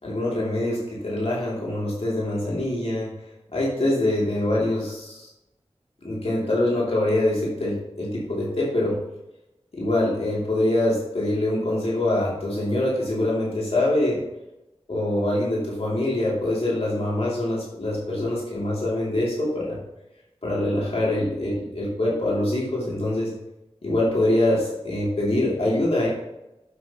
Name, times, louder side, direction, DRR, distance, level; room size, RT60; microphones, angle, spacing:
voice 1, 0.0-3.1 3.5-5.2 6.0-9.0 9.7-14.2 14.9-19.8 20.4-23.3 23.8-26.1, left 1 dB, 70° left, -6 dB, 2.9 m, -24 dB
8.3 x 7.6 x 3.0 m, 0.92 s
wide cardioid pair, 65°, 11 cm